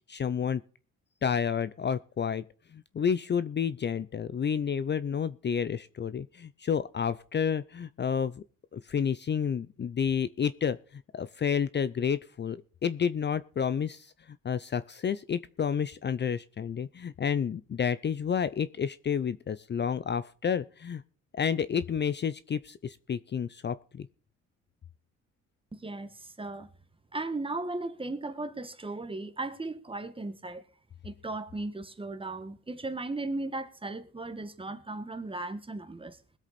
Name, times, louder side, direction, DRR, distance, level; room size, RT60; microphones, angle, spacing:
voice 1, 0.1-0.6 1.2-2.4 2.7-8.4 8.7-21.0 21.3-24.1, left 7 dB, 35° left, 0.6 m, -30 dB
voice 2, 25.7-26.7 27.1-30.6 31.0-36.2, right 2 dB, 15° right, 1.6 m, -36 dB
21.0 x 8.0 x 4.2 m
cardioid pair, 90°, 30 cm